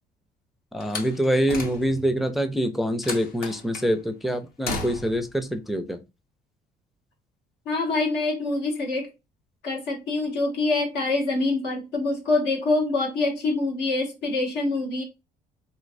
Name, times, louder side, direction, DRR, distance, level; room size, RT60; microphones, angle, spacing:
voice 1, 0.7-6.0, equal, ahead, 0.4 m, -25 dB
Slam, 0.8-2.2 3.0-3.9 4.6-5.3, left 3 dB, 60° left, 0.8 m, -34 dB
voice 2, 7.6-9.1 9.6-15.0, left 2 dB, 90° left, 1.4 m, -25 dB
3.2 x 3.0 x 2.5 m
cardioid pair, 110°, 17 cm